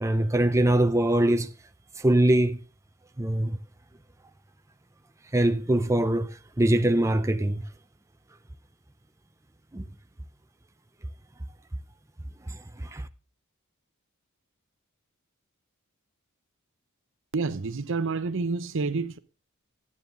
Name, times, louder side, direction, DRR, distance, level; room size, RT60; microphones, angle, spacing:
voice 1, 0.0-1.5 2.0-2.6 3.2-3.6 5.3-7.6 9.7-9.8 12.5-13.1, right 1 dB, 15° right, 0.6 m, -23 dB
voice 2, 17.3-19.2, right 4 dB, 65° right, 0.8 m, -28 dB
12.0 x 9.4 x 3.7 m
head